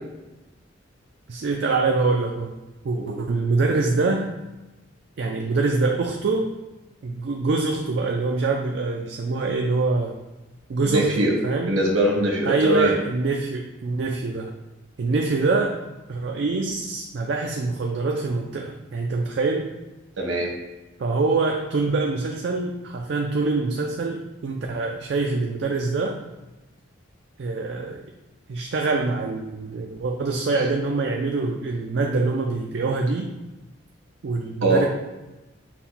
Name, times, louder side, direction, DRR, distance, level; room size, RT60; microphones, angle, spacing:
voice 1, 1.3-2.6 2.8-4.3 5.2-6.5 7.0-10.2 10.7-11.7 12.5-14.5 15.0-15.8 16.1-19.7 21.0-26.2 27.4-28.0 28.5-33.3 34.2-34.9, right 3 dB, 55° right, 2 dB, 0.4 m, -24 dB
voice 2, 10.8-11.4 11.7-12.9 20.2-20.5 30.6-30.7 34.6-34.9, right 1 dB, 80° right, -1 dB, 1.2 m, -22 dB
5.8 x 2.2 x 4.2 m, 1.1 s
head